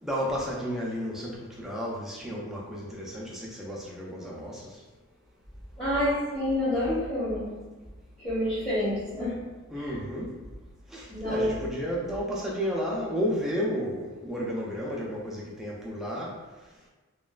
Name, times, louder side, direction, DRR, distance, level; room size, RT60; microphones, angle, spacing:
voice 1, 0.0-4.8 9.7-10.4 10.9-16.4, equal, ahead, -5 dB, 0.4 m, -32 dB
voice 2, 5.8-7.6 8.2-9.4 9.7-10.0 11.1-11.5, left 1 dB, 20° left, -12 dB, 0.8 m, -28 dB
3.1 x 2.2 x 2.3 m, 1.2 s
head